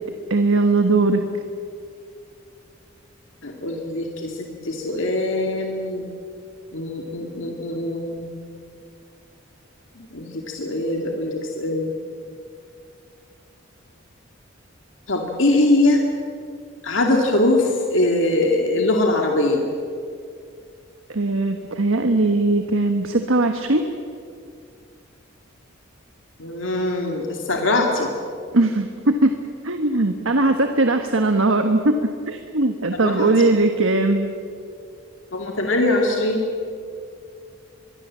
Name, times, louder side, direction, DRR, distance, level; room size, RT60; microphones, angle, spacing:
voice 1, 0.3-1.2 21.1-23.8 28.5-29.4 29.6-34.3, right 2 dB, 90° right, 6 dB, 1.4 m, -19 dB
voice 2, 3.4-6.1 6.7-8.3 10.0-11.9 15.1-16.0 16.8-19.6 26.4-28.1 32.9-33.5 35.3-36.4, left 2 dB, 80° left, 1 dB, 2.3 m, -22 dB
24.5 x 22.5 x 7.5 m, 2.3 s
head